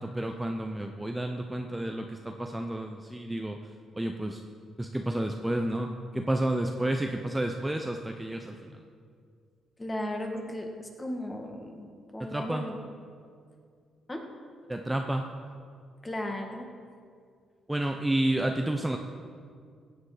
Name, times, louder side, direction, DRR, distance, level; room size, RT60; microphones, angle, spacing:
voice 1, 0.0-4.4 4.8-8.8 12.2-12.7 14.7-15.3 17.7-19.0, right 1 dB, 10° right, 4 dB, 0.7 m, -31 dB
voice 2, 9.8-11.9 12.1-12.8 14.1-14.2 16.0-16.6, left 1 dB, 20° left, 3 dB, 1.7 m, -35 dB
16.0 x 8.1 x 5.0 m, 2.2 s
cardioid pair, 90°, 0 cm